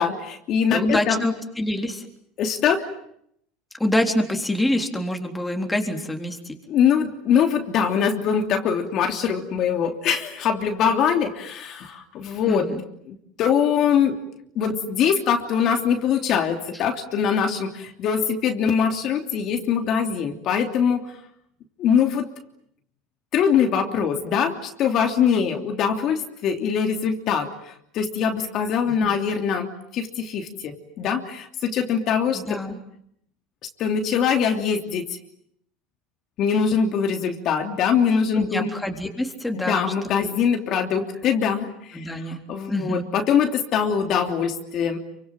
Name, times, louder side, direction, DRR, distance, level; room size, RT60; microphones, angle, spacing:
voice 1, 0.0-1.2 2.4-2.9 6.7-12.7 13.1-14.2 14.5-21.0 21.8-22.3 23.3-32.6 33.8-35.1 36.4-38.7 39.5-42.2 42.5-45.0, left 7 dB, 50° left, 4 dB, 3.1 m, -23 dB
voice 2, 0.7-2.1 3.7-6.6 12.5-12.8 29.0-29.1 32.3-32.8 38.3-39.9 40.1-40.3 41.9-42.4 42.7-43.0, left 1 dB, 5° left, 3 dB, 3.8 m, -26 dB
28.5 x 25.0 x 7.7 m, 0.73 s
supercardioid pair, 120°, 0 cm